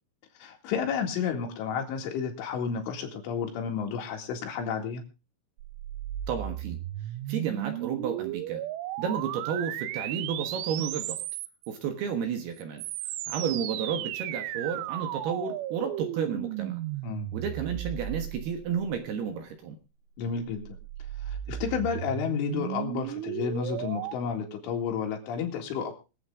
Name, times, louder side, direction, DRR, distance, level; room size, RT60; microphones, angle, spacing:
voice 1, 0.4-5.0 17.0-17.3 20.2-20.8 21.3-25.9, left 7 dB, 75° left, 2 dB, 4.6 m, -31 dB
sound 1, 5.6-11.7 12.6-19.2 20.2-24.2, right 13 dB, 80° right, 3.3 m, -35 dB
voice 2, 6.3-6.8 7.3-8.6 9.0-11.2 11.7-12.8 13.3-16.8 17.3-19.8, right 7 dB, 65° right, 6 dB, 3.0 m, -32 dB
24.5 x 8.3 x 3.7 m, 0.31 s
omnidirectional pair, 5.6 m